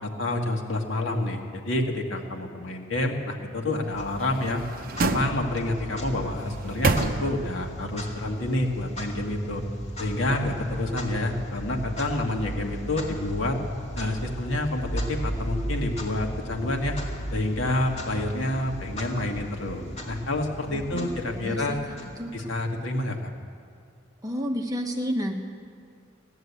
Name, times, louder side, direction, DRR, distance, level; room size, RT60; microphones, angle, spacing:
voice 1, 0.0-4.6 5.0-9.6 10.0-13.6 13.9-16.9 17.3-21.8 22.3-23.3, left 1 dB, 75° left, 2 dB, 1.7 m, -28 dB
Clock, 3.9-22.7, equal, 30° left, 2.1 m, -36 dB
sound 1, 4.1-5.8 6.4-7.7 8.0-8.1, right 3 dB, 45° right, 0.6 m, -29 dB
voice 2, 20.7-22.3 24.2-25.4, equal, 20° right, 2 dB, 1.0 m, -31 dB
16.0 x 10.5 x 8.2 m, 2.3 s
head